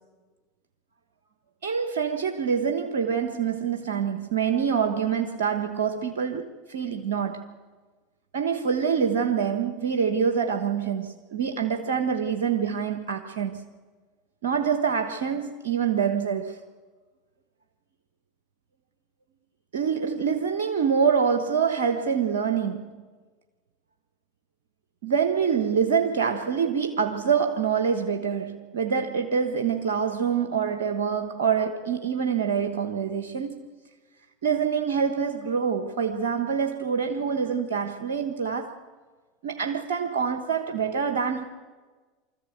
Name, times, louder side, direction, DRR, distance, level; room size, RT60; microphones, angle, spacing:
voice 1, 1.6-7.6 8.3-13.6 14.4-16.6 19.7-23.0 25.0-33.7 34.4-38.8 39.4-41.4, right 6 dB, 80° right, 1.2 m, -26 dB
25.5 x 14.0 x 8.0 m
hypercardioid pair, 90°, 0 cm